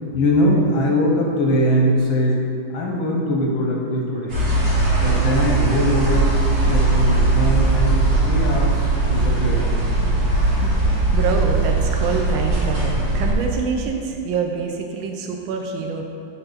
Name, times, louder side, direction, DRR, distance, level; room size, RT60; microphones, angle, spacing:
voice 1, 0.1-2.4 2.7-4.3 5.0-6.3 6.6-8.8 9.1-9.7, equal, 80° left, -1 dB, 1.9 m, -21 dB
sound 1, 4.3-13.3, right 2 dB, 65° right, 2.8 m, -19 dB
voice 2, 10.6-16.0, right 5 dB, 85° right, 2 dB, 1.4 m, -26 dB
7.8 x 5.8 x 4.0 m, 2.4 s
omnidirectional pair, 2.1 m